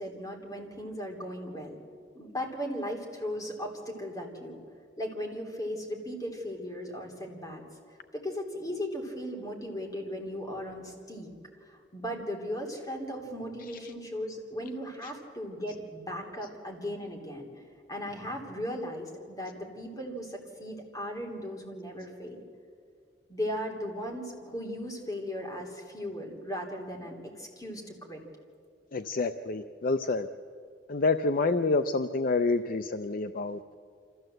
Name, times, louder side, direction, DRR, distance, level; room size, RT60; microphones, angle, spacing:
voice 1, 0.0-1.8 2.1-4.6 5.0-7.6 8.1-11.3 11.6-17.6 17.9-22.4 23.3-28.2, equal, 20° left, 0 dB, 3.3 m, -37 dB
voice 2, 28.9-30.3 30.9-33.6, left 3 dB, 50° left, 9 dB, 0.5 m, -28 dB
26.5 x 14.5 x 7.8 m, 2.2 s
head